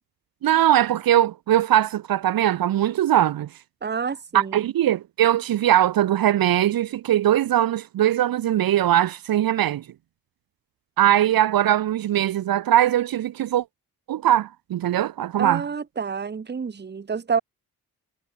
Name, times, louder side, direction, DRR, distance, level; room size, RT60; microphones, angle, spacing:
voice 1, 0.4-3.5 4.3-9.8 11.0-13.6 14.1-15.6, right 12 dB, 65° right, 0.8 m, -20 dB
voice 2, 3.8-4.7 15.4-17.4, right 6 dB, 25° right, 1.0 m, -28 dB
supercardioid pair, 55°, 38 cm